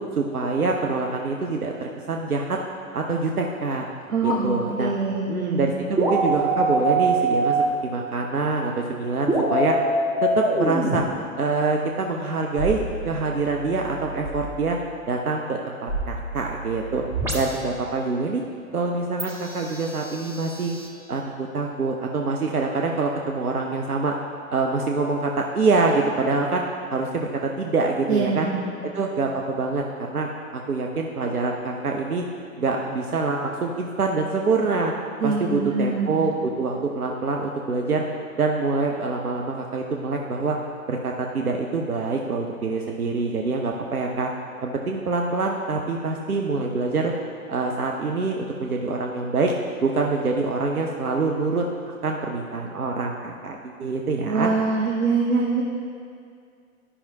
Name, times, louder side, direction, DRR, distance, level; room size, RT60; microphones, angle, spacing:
voice 1, 0.1-2.6 2.9-3.9 4.2-4.9 5.2-9.8 10.2-11.1 11.4-12.8 13.0-14.8 15.1-17.0 17.3-18.4 18.7-20.8 21.1-24.1 24.5-26.6 26.9-28.5 28.9-32.2 32.6-34.9 35.2-38.0 38.3-40.6 40.9-44.3 44.6-47.1 47.5-49.5 49.8-54.5, right 3 dB, 90° right, 1 dB, 0.7 m, -25 dB
voice 2, 4.1-5.9 28.1-28.7 35.2-36.2 54.3-55.6, right 4 dB, 65° right, -1 dB, 1.0 m, -24 dB
sound 1, 4.2-4.4 6.0-7.7 9.3-11.0 12.6-14.3 15.9-17.6 19.2-20.9, right 2 dB, 5° right, 0.5 m, -25 dB
12.0 x 5.6 x 2.7 m, 2.3 s
figure-of-eight pair, 105°, 43 cm